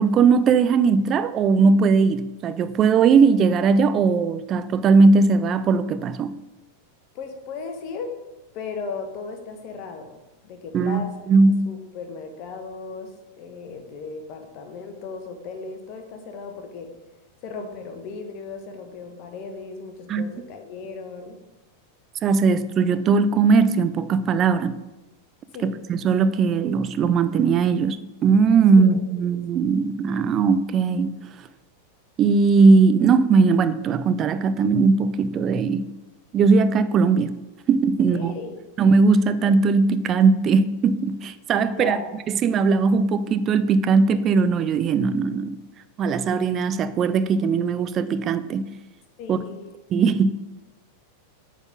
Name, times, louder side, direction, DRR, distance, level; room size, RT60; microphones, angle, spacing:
voice 1, 0.0-6.4 10.7-11.7 20.1-20.2 22.2-24.8 25.6-31.2 32.2-35.9 36.3-37.3 37.7-38.4 38.8-42.0 42.3-45.6 46.0-48.7 49.3-49.4 49.9-50.3, right 4 dB, 30° right, 0.4 m, -19 dB
voice 2, 7.1-8.2 8.5-11.1 11.7-16.9 17.4-21.4 25.5-25.7 28.8-29.3 38.1-38.6 41.7-42.1 49.2-49.6, left 4 dB, 40° left, 1.3 m, -36 dB
8.6 x 4.0 x 6.1 m
figure-of-eight pair, 90°, 0 cm